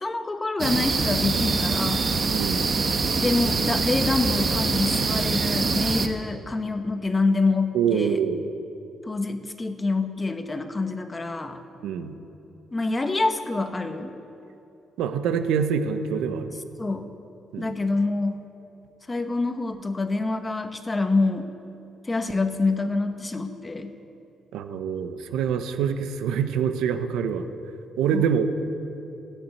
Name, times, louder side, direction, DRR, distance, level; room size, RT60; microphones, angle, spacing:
voice 1, 0.0-2.1 3.2-8.2 9.1-11.6 12.7-14.1 16.8-17.1 17.6-18.4 19.1-21.5 22.0-23.9 28.1-28.3, left 3 dB, 25° left, 8 dB, 1.1 m, -26 dB
sound 1, 0.6-6.1, right 4 dB, 45° right, 1.2 m, -24 dB
voice 2, 2.3-2.7 7.7-8.5 11.8-12.1 15.0-16.5 17.5-17.7 24.5-27.4 28.0-28.5, right 7 dB, 90° right, 8 dB, 0.9 m, -25 dB
13.5 x 9.4 x 9.4 m, 2.9 s
cardioid pair, 90°, 0 cm